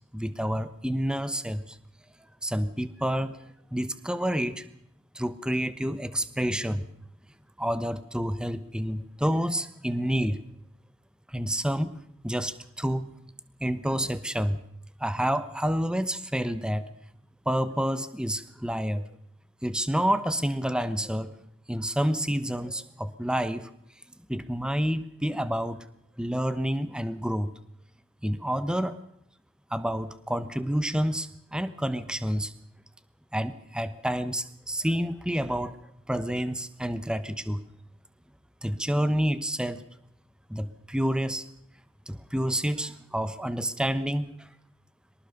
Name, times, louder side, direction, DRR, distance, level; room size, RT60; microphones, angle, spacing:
voice 1, 0.1-1.8 2.4-4.7 5.1-6.9 7.6-10.4 11.3-12.0 12.2-13.1 13.6-14.6 15.0-16.9 17.4-19.1 19.6-21.3 21.7-23.7 24.3-25.9 26.2-27.5 28.2-29.0 29.7-32.5 33.3-35.8 36.1-37.6 38.6-39.8 40.5-41.4 42.1-44.5, equal, 5° right, 13 dB, 1.0 m, -29 dB
23.5 x 19.0 x 6.7 m, 0.75 s
head